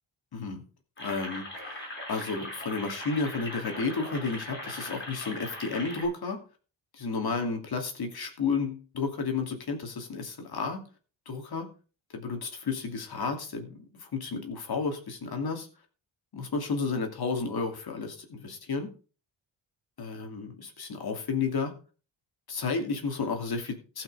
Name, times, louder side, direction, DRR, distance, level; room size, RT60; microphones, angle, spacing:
voice 1, 0.3-0.6 1.0-6.4 6.9-10.8 11.3-11.7 12.1-15.7 16.3-18.9 20.0-21.7 22.5-24.0, left 4 dB, 55° left, 4 dB, 2.6 m, -32 dB
sound 1, 1.0-6.1, left 1 dB, 25° left, 7.0 m, -40 dB
15.0 x 5.9 x 5.4 m, 0.36 s
wide cardioid pair, 170°, 46 cm